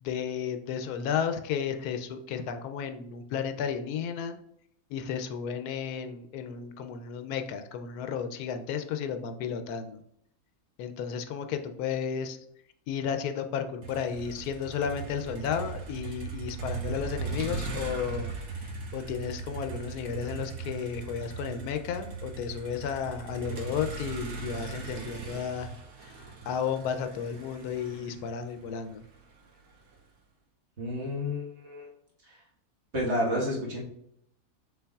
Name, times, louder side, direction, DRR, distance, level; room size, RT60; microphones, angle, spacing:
voice 1, 0.0-4.4 4.9-10.0 10.8-12.4 12.9-18.3 18.6-25.7 26.4-29.0, left 7 dB, 80° left, 8 dB, 1.1 m, -33 dB
Motor vehicle (road), 13.8-29.9, right 4 dB, 85° right, 1.5 m, -39 dB
voice 2, 30.8-31.9 32.9-33.8, left 1 dB, 45° right, -4 dB, 1.6 m, -30 dB
5.7 x 3.8 x 2.3 m, 0.75 s
omnidirectional pair, 1.6 m